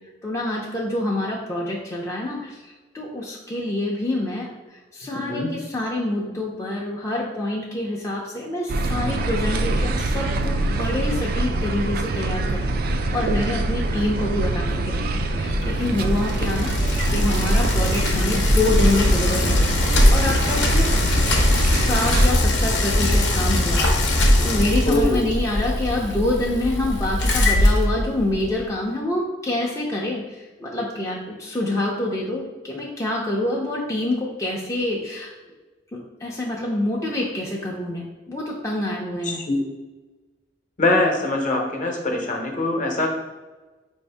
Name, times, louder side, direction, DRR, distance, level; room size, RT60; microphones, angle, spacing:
voice 1, 0.2-4.5 4.9-19.7 20.1-20.9 21.7-23.8 24.4-30.2 30.6-35.3 35.9-39.4, left 1 dB, 15° left, -4 dB, 0.4 m, -26 dB
voice 2, 5.1-5.5 24.8-25.3 39.2-39.6 40.8-43.1, left 2 dB, 45° left, 1 dB, 0.8 m, -23 dB
sound 1, 8.7-22.3, right 2 dB, 55° right, 0.3 m, -25 dB
Bicycle, 15.4-28.6, left 1 dB, 80° left, 0.7 m, -20 dB
4.7 x 2.6 x 3.4 m, 1.2 s
head